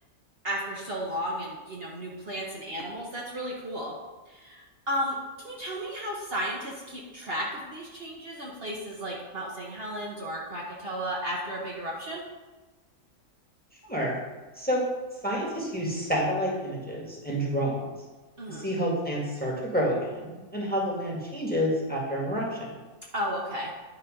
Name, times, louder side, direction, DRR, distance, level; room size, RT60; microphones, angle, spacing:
voice 1, 0.4-4.0 4.3-12.2 18.4-18.7 23.1-23.7, equal, 45° right, -3 dB, 1.2 m, -34 dB
voice 2, 15.2-17.8 18.5-22.7, equal, 5° left, -3 dB, 1.7 m, -29 dB
10.0 x 4.3 x 5.2 m, 1.2 s
omnidirectional pair, 1.5 m